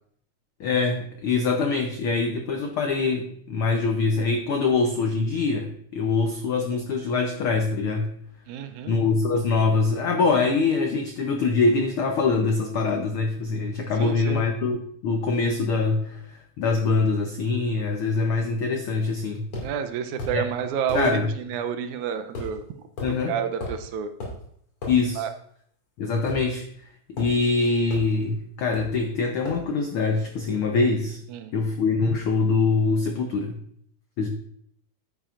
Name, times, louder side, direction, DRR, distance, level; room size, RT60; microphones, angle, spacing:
voice 1, 0.6-8.1 8.9-14.8 15.0-19.5 20.3-20.4 20.9-21.3 23.0-23.3 24.9-25.2 26.0-26.6 27.1-31.2 31.5-33.6 34.2-34.3, left 4 dB, 85° left, 4 dB, 1.1 m, -24 dB
voice 2, 8.5-8.9 14.0-14.4 19.6-22.6 23.3-24.1 25.2-25.3 31.3-31.5, right 7 dB, 80° right, 9 dB, 2.1 m, -29 dB
sound 1, 19.5-19.7 20.2-20.4 20.9-21.1 22.3-22.6 23.0-23.1 23.6-23.8 24.2-24.4 24.8-25.0 26.3-26.8 27.2-27.4 27.9-28.1 28.7-29.0 29.4-29.7, left 1 dB, 50° left, 3.0 m, -34 dB
10.5 x 9.2 x 2.5 m, 0.66 s
omnidirectional pair, 3.4 m